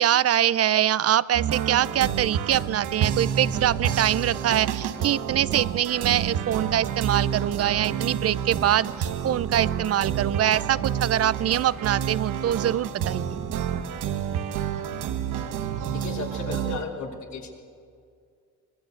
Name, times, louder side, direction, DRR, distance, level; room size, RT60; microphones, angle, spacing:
voice 1, 0.0-13.4, right 11 dB, 50° right, 18 dB, 0.6 m, -24 dB
sound 1, 1.3-16.8, right 9 dB, 85° right, 1.2 m, -29 dB
voice 2, 15.8-17.6, left 4 dB, 65° left, 0 dB, 3.6 m, -34 dB
23.5 x 21.0 x 7.9 m, 2.3 s
cardioid pair, 90°, 30 cm